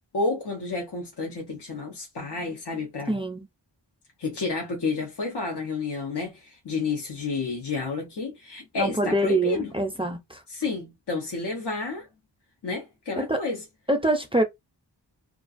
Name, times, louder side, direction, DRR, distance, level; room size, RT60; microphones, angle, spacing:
voice 1, 0.1-3.2 4.2-9.7 10.5-12.1 12.6-13.6, left 3 dB, 65° left, 0.8 m, -30 dB
voice 2, 3.1-3.5 8.8-10.4 13.2-13.4 13.9-14.4, right 1 dB, 15° right, 0.4 m, -25 dB
2.4 x 2.3 x 2.4 m
wide cardioid pair, 85°, 44 cm